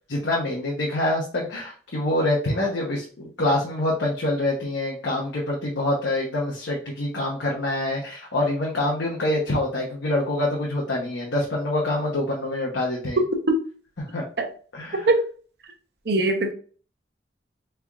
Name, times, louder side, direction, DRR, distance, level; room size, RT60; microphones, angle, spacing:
voice 1, 0.1-13.2 14.0-14.2 14.7-15.1, left 1 dB, 75° left, -3 dB, 0.8 m, -26 dB
voice 2, 16.1-16.5, right 2 dB, 55° right, 4 dB, 0.6 m, -20 dB
3.6 x 3.4 x 2.3 m, 0.41 s
head